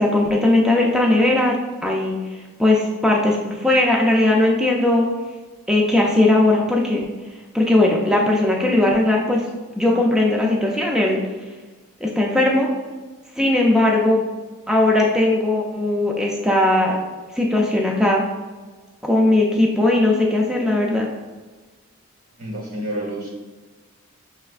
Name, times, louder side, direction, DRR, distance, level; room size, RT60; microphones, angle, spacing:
voice 1, 0.0-5.1 5.7-7.0 7.5-9.5 9.8-11.2 12.0-12.7 13.3-14.2 14.7-17.0 17.3-18.2 19.0-21.1, left 2 dB, 5° right, -2 dB, 0.3 m, -18 dB
voice 2, 22.4-23.3, right 1 dB, 75° right, -2 dB, 1.3 m, -29 dB
5.4 x 3.2 x 2.4 m, 1.3 s
head